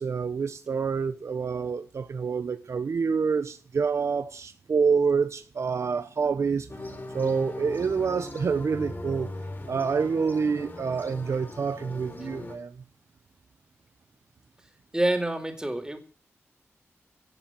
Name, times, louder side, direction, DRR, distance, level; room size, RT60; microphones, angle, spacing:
voice 1, 0.0-6.7 7.1-9.3 9.7-12.8, right 5 dB, 65° right, 1.1 m, -27 dB
sound 1, 6.7-12.6, left 2 dB, 40° left, 4.2 m, -40 dB
voice 2, 14.9-16.0, right 1 dB, 15° right, 4.3 m, -27 dB
18.0 x 7.3 x 9.0 m
cardioid pair, 50°, 5 cm